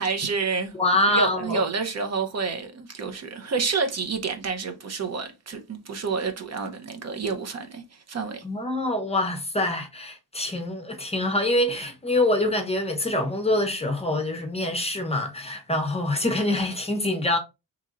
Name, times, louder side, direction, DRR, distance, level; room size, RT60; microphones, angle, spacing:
voice 1, 0.0-0.7 1.1-8.4, right 4 dB, 50° right, 0.7 m, -29 dB
voice 2, 0.7-1.6 8.4-17.4, left 1 dB, 15° left, 0.6 m, -25 dB
4.1 x 3.0 x 2.5 m
cardioid pair, 115°, 35 cm